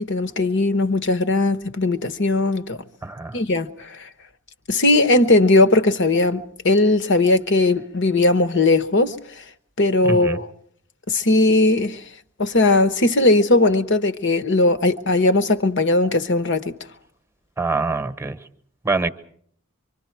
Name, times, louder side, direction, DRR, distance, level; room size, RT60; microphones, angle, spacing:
voice 1, 0.0-2.8 3.3-4.1 4.7-9.2 9.8-10.5 11.1-12.0 12.4-16.8, left 2 dB, 60° left, 1.1 m, -18 dB
voice 2, 3.0-3.4 10.1-10.4 17.6-18.4 18.8-19.1, right 3 dB, 10° right, 1.0 m, -24 dB
25.5 x 25.0 x 4.7 m
head